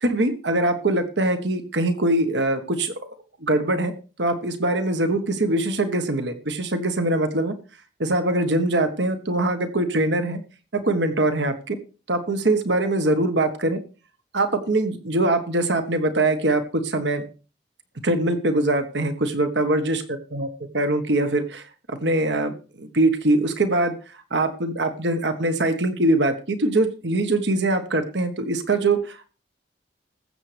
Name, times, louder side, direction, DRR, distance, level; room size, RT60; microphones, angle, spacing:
voice 1, 0.0-2.9 3.4-3.9 4.2-7.5 8.0-10.4 10.7-11.8 12.1-13.8 14.3-17.3 18.0-20.0 20.3-20.5 20.7-24.0 24.3-29.3, right 2 dB, 75° right, 8 dB, 1.4 m, -22 dB
20.0 x 8.0 x 3.4 m, 0.34 s
head